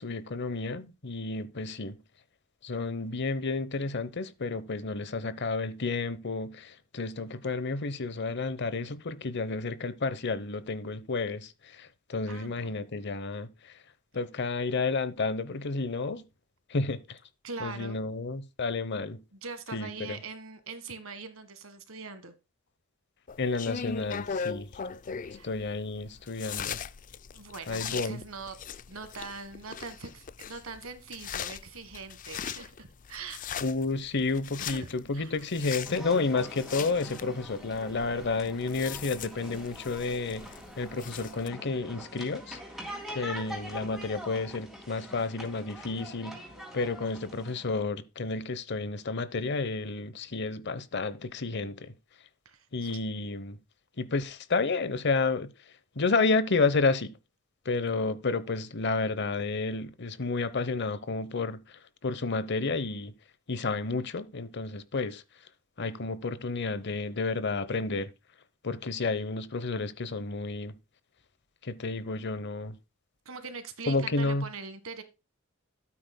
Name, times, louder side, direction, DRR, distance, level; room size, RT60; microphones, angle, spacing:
voice 1, 0.0-2.0 2.6-13.7 14.1-16.2 16.7-17.2 17.6-19.2 19.7-20.2 23.4-24.7 25.4-26.8 27.7-28.2 33.6-40.5 40.8-42.6 43.1-46.4 46.7-51.9 52.7-53.6 54.0-55.5 56.0-57.2 57.6-63.1 63.5-65.2 65.8-68.1 68.6-70.7 71.6-72.8 73.9-74.4, left 3 dB, 55° left, 0.9 m, -31 dB
voice 2, 12.3-12.8 17.4-18.0 19.3-22.3 25.2-25.5 27.3-28.6 28.9-33.4 34.7-34.9 35.1-35.4 42.9-43.3 52.4-53.0 73.2-75.0, right 4 dB, 75° right, 1.7 m, -42 dB
sound 1, 23.3-41.5, left 7 dB, 40° left, 0.4 m, -40 dB
sound 2, 35.8-47.8, equal, ahead, 3.7 m, -44 dB
13.0 x 8.7 x 2.2 m
head